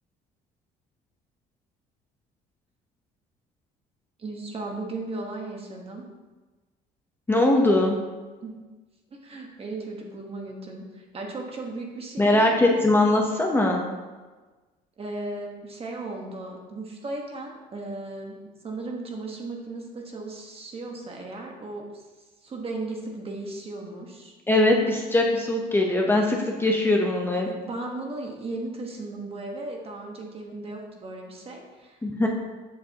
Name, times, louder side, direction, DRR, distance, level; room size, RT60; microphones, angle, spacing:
voice 1, 4.2-6.0 8.4-8.6 9.1-12.8 15.0-22.0 22.4-24.3 27.5-32.0, right 2 dB, 35° right, 1 dB, 1.4 m, -36 dB
voice 2, 7.3-8.0 12.2-13.9 24.5-27.5 32.0-32.3, left 1 dB, 15° left, 0 dB, 0.9 m, -21 dB
7.7 x 6.6 x 3.0 m, 1.3 s
cardioid pair, 110°, 17 cm